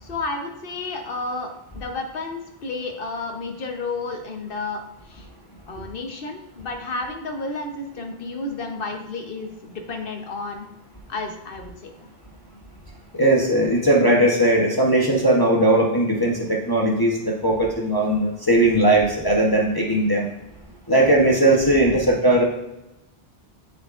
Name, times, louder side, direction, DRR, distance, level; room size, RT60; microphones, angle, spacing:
voice 1, 0.0-5.3 5.7-10.7 11.1-11.9 20.9-21.1, left 3 dB, 60° left, 3 dB, 1.1 m, -31 dB
voice 2, 13.1-20.3 20.9-22.4, right 1 dB, 25° left, -3 dB, 0.9 m, -18 dB
7.9 x 6.5 x 2.5 m, 0.93 s
omnidirectional pair, 1.0 m